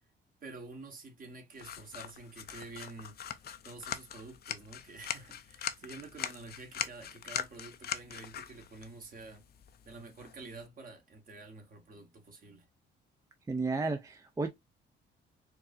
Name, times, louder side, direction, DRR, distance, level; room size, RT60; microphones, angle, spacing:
voice 1, 0.4-3.2 3.6-9.4 9.8-12.6, right 3 dB, 45° right, 1.4 m, -49 dB
sound 1, 1.6-10.7, left 9 dB, 55° left, 0.5 m, -42 dB
voice 2, 13.5-14.5, right 3 dB, 15° right, 0.4 m, -32 dB
4.5 x 2.6 x 2.5 m
cardioid pair, 90°, 20 cm